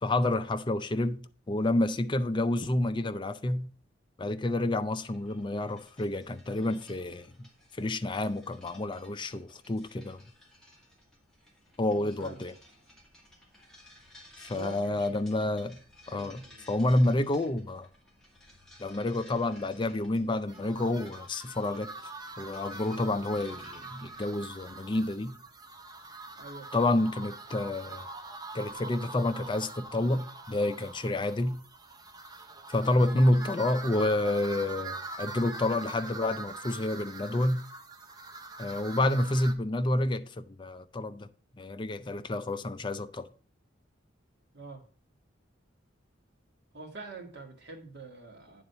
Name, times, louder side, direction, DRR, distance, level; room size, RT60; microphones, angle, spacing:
voice 1, 0.0-3.7 4.2-7.5 7.8-10.2 11.8-12.5 14.4-15.8 16.1-17.9 18.8-21.9 22.4-25.4 26.7-28.1 28.5-31.6 32.7-37.6 38.6-41.3 41.6-43.3, left 1 dB, 25° left, 0.5 m, -29 dB
sound 1, 5.0-24.2, left 1 dB, 5° left, 2.2 m, -57 dB
voice 2, 11.9-12.4 14.5-15.5 16.1-16.7 26.3-26.9 39.0-39.3 44.5-44.8 46.7-48.6, right 3 dB, 60° right, 1.8 m, -46 dB
sound 2, 20.5-39.5, right 3 dB, 20° right, 0.8 m, -43 dB
9.3 x 3.9 x 5.4 m
head